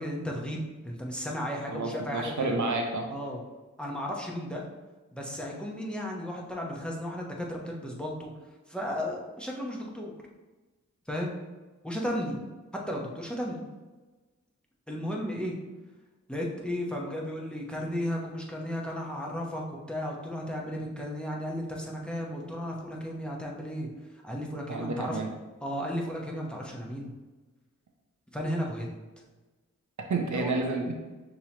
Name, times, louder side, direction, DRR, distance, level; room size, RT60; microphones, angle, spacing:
voice 1, 0.0-2.6 3.1-3.4 3.8-4.6 5.1-8.3 8.7-10.1 11.1-11.4 11.8-12.4 12.7-13.6 14.9-15.5 16.3-23.9 24.2-25.2 25.6-27.1 28.3-28.9 30.3-30.5, equal, 5° left, -1 dB, 0.9 m, -34 dB
voice 2, 1.7-3.1 24.5-25.3 30.1-30.9, right 3 dB, 65° right, 2 dB, 0.7 m, -30 dB
6.2 x 2.9 x 2.9 m, 1.2 s
cardioid pair, 55°, 31 cm